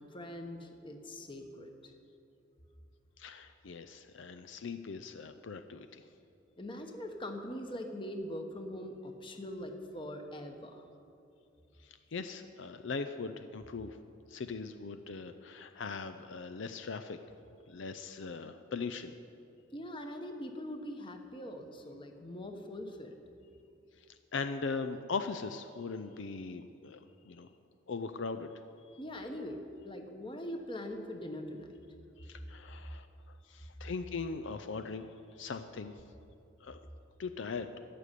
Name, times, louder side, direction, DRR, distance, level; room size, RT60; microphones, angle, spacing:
voice 1, 0.1-1.9 6.6-10.9 19.7-23.2 29.0-31.7, left 1 dB, 25° left, 4 dB, 1.1 m, -42 dB
voice 2, 3.2-6.0 11.8-14.0 14.3-17.2 17.7-19.1 24.3-27.5 27.9-28.5 32.2-33.1 33.5-36.0 36.6-36.8 37.2-37.8, left 4 dB, 65° left, 9 dB, 0.5 m, -40 dB
14.0 x 6.8 x 9.9 m, 2.6 s
head